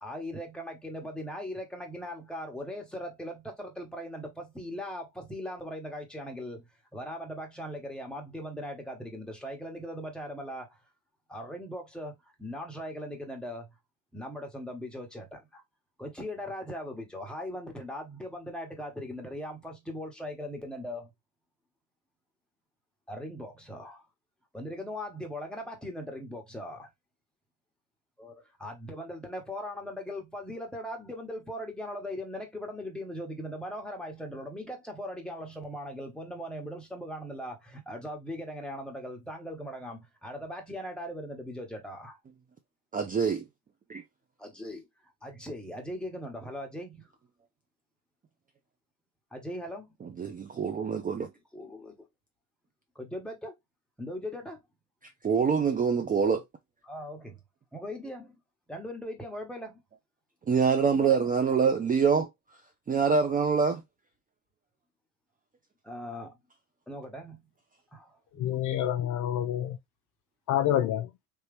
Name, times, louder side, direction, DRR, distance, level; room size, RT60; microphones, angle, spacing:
voice 1, 0.0-6.6 6.9-10.8 11.3-12.1 12.4-13.7 14.1-15.6 16.0-21.1 23.1-24.0 24.5-26.9 28.2-28.3 28.6-42.2 44.4-44.9 45.2-47.0 49.3-49.9 51.2-51.9 52.9-53.5 54.0-54.6 56.8-57.4 57.7-58.4 58.7-59.8 60.9-61.3 65.8-66.4 66.9-67.4 67.9-68.2, equal, ahead, 1.4 m, -39 dB
voice 2, 42.9-43.4 43.9-44.0 50.0-51.3 55.2-56.4 60.5-62.3 62.9-63.8, right 6 dB, 20° right, 0.5 m, -25 dB
voice 3, 68.4-69.8 70.5-71.1, left 11 dB, 50° left, 0.5 m, -27 dB
3.3 x 2.9 x 3.3 m
supercardioid pair, 100°, 40 cm